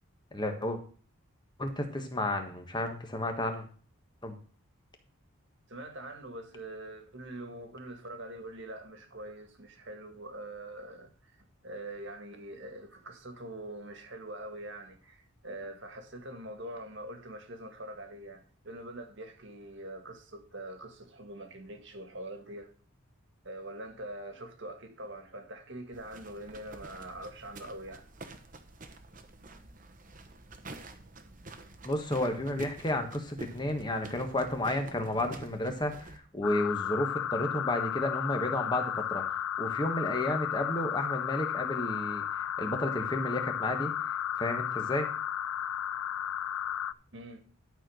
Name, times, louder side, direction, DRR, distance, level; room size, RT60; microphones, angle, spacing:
voice 1, 0.3-0.8 1.6-3.6 4.2-4.3 31.8-39.2 39.6-43.9 44.4-45.1, left 1 dB, 20° left, 1.5 m, -32 dB
voice 2, 5.7-22.7 23.4-28.1 47.1-47.4, right 1 dB, 55° right, 1.9 m, -44 dB
sound 1, 25.9-36.2, right 2 dB, 35° right, 1.1 m, -48 dB
sound 2, 36.4-46.9, left 10 dB, 75° left, 0.3 m, -33 dB
12.0 x 4.5 x 6.4 m
head